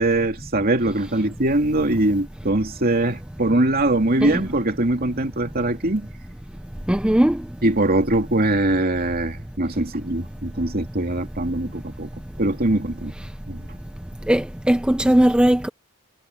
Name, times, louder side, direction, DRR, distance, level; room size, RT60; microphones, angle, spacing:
voice 1, 0.0-6.1 7.6-12.1 12.4-13.1 13.5-13.6, right 2 dB, 45° right, 2.8 m, -22 dB
voice 2, 6.9-7.4 14.3-15.7, right 1 dB, 5° right, 0.4 m, -18 dB
head